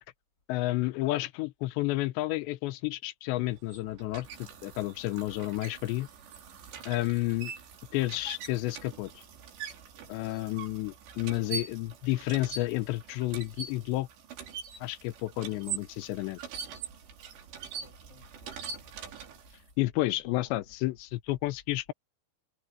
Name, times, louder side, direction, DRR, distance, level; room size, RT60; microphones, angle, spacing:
voice 1, 0.5-4.3 4.6-6.1 6.9-7.5 7.9-9.1 10.1-14.1 14.8-16.4 19.8-21.9, left 18 dB, 90° left, 3.0 m, -31 dB
sound 1, 3.5-19.7, right 6 dB, 80° right, 5.4 m, -43 dB
voice 2, 17.8-18.9 20.3-21.0, left 2 dB, 30° left, 2.2 m, -57 dB
omnidirectional pair, 5.0 m